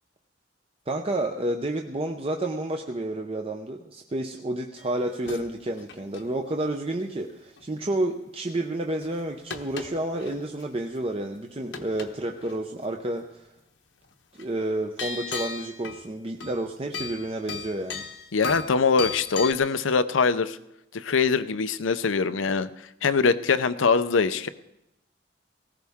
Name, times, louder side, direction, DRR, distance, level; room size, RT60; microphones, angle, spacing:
voice 1, 0.9-13.5 14.4-18.0, right 1 dB, 30° right, 3 dB, 0.7 m, -30 dB
sound 1, 4.8-5.5 5.8-6.3 7.6-7.7 9.0-10.6 10.9-11.4 11.7-12.1 12.4-12.6 14.4-14.5 15.0-16.1 16.4-16.6 16.9-19.5, left 4 dB, 70° left, 1.0 m, -36 dB
voice 2, 18.3-20.6 20.9-22.7 23.0-24.5, left 5 dB, 85° left, 13 dB, 0.6 m, -23 dB
18.5 x 15.5 x 3.6 m, 0.88 s
head